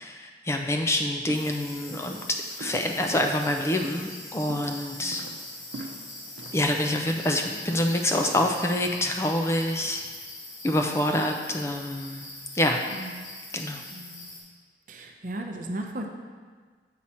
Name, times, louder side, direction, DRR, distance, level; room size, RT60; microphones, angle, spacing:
voice 1, 0.0-2.2 2.6-5.2 6.5-10.0 10.6-12.3 12.5-12.8 13.5-13.8, left 1 dB, 15° left, 3 dB, 0.4 m, -26 dB
sound 1, 0.7-9.2, right 2 dB, 85° right, 0.7 m, -45 dB
sound 2, 1.3-14.4, left 2 dB, 50° left, 2.5 m, -43 dB
voice 2, 5.0-5.3 12.9-13.2 13.9-14.3 14.9-16.1, right 1 dB, 45° right, 3 dB, 0.7 m, -36 dB
7.6 x 5.7 x 4.3 m, 1.5 s
head